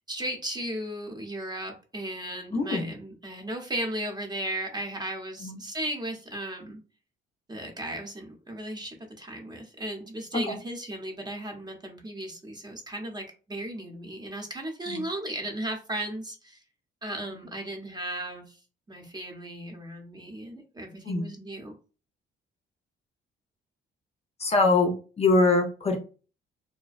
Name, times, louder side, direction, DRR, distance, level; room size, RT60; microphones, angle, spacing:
voice 1, 0.1-6.8 7.5-16.6 17.0-18.6 18.9-21.7, right 1 dB, 20° right, 2 dB, 0.7 m, -36 dB
voice 2, 2.5-2.9 5.4-5.6 10.5-10.6 14.9-15.0 21.1-21.3 24.4-26.0, left 3 dB, 30° left, 3 dB, 0.5 m, -23 dB
2.5 x 2.1 x 2.4 m, 0.35 s
cardioid pair, 90°, 20 cm